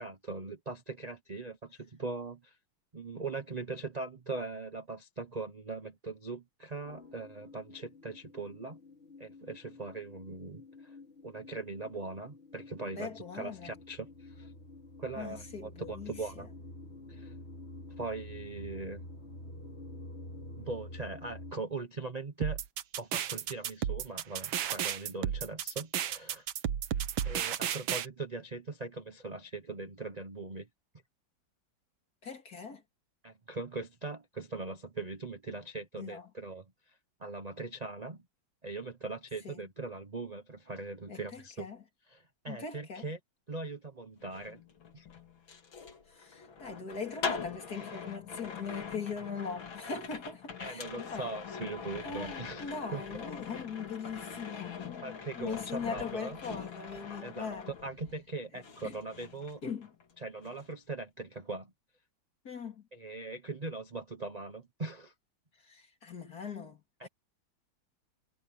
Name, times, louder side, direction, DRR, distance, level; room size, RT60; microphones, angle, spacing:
voice 1, 0.0-2.6 2.9-8.8 9.2-11.0 11.2-14.5 15.0-16.5 17.1-17.3 18.0-19.1 20.6-22.6 22.9-26.5 27.2-30.7 33.2-36.6 37.2-38.2 38.6-41.7 42.1-43.2 43.5-44.6 44.9-45.1 50.6-53.0 55.0-56.4 57.2-59.6 60.2-61.7 62.9-65.1 67.0-67.1, right 3 dB, 30° right, 0.8 m, -40 dB
sound 1, 6.9-21.5, left 1 dB, 30° left, 3.2 m, -49 dB
voice 2, 12.9-13.7 15.2-16.5 32.2-32.8 36.0-36.3 39.4-39.6 41.1-41.8 42.5-43.1 46.1-51.3 52.0-57.7 58.5-59.0 59.6-59.9 62.4-62.9 65.6-67.1, left 5 dB, 50° left, 3.3 m, -41 dB
sound 2, 22.4-28.1, right 9 dB, 80° right, 1.8 m, -33 dB
sound 3, 44.2-58.3 58.6-60.1 60.4-60.7, left 6 dB, 75° left, 3.0 m, -43 dB
omnidirectional pair, 2.1 m